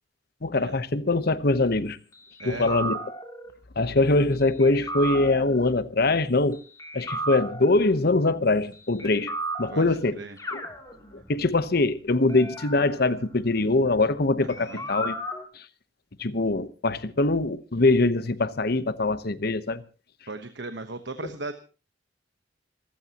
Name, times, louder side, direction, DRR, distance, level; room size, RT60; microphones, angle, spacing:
voice 1, 0.4-2.0 2.4-3.0 3.8-6.6 6.9-9.3 9.6-10.2 10.5-10.6 11.3-15.2 16.2-19.8, left 2 dB, 60° left, 1.0 m, -23 dB
sound 1, 2.4-3.5 4.6-5.7 6.8-7.9 9.0-10.1 10.4-11.5 12.3-14.1 14.5-15.4, right 1 dB, 20° left, 2.9 m, -35 dB
voice 2, 2.4-2.8 9.7-10.4 14.4-14.9 20.3-21.5, right 3 dB, 70° right, 1.2 m, -37 dB
26.5 x 14.5 x 3.0 m
head